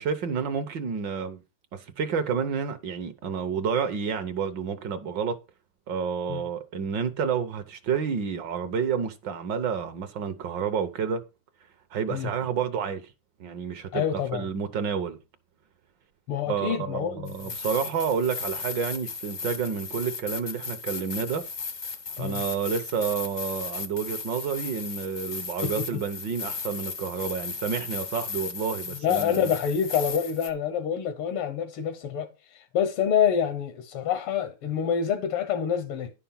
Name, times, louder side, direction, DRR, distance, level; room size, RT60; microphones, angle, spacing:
voice 1, 0.0-1.4 1.7-5.4 5.9-11.2 11.9-13.1 13.4-15.2 16.4-21.4 22.2-29.5, right 6 dB, 65° right, 1.4 m, -29 dB
voice 2, 13.9-14.5 16.3-17.3 22.2-22.4 25.6-26.0 29.0-36.1, left 8 dB, 85° left, 1.9 m, -27 dB
sound 1, 17.3-30.5, left 5 dB, 45° left, 0.6 m, -36 dB
11.0 x 5.8 x 5.6 m
omnidirectional pair, 2.4 m